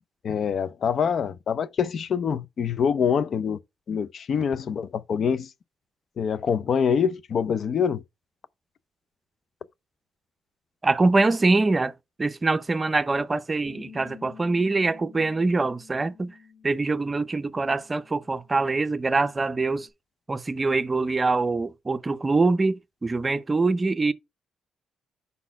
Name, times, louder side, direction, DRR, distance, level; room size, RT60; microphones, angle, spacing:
voice 1, 0.2-3.6 3.9-5.5 6.2-8.0, left 7 dB, 55° left, 0.5 m, -25 dB
voice 2, 10.8-11.9 12.2-16.3 16.6-19.9 20.3-24.1, right 3 dB, 25° right, 0.6 m, -24 dB
Bass guitar, 13.7-19.9, left 7 dB, 35° left, 1.8 m, -51 dB
5.5 x 4.1 x 5.7 m
cardioid pair, 90°, 0 cm